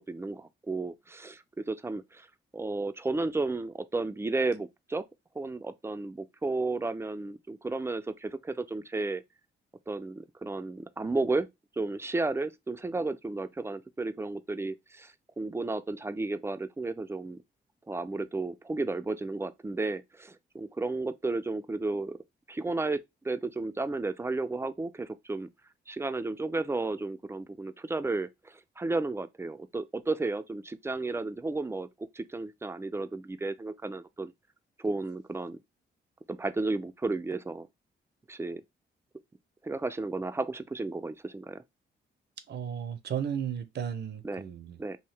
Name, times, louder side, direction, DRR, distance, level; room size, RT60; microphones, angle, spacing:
voice 1, 0.0-2.3 2.5-5.1 5.4-9.2 9.9-11.5 11.8-17.4 17.9-22.2 22.5-25.5 25.9-31.9 32.1-34.3 34.8-35.6 36.3-37.7 38.3-38.6 39.6-41.6 44.2-44.4 44.8-45.0, right 3 dB, 15° right, 0.3 m, -33 dB
voice 2, 42.5-44.8, right 8 dB, 60° right, 0.6 m, -34 dB
2.8 x 2.7 x 3.2 m
cardioid pair, 75°, 20 cm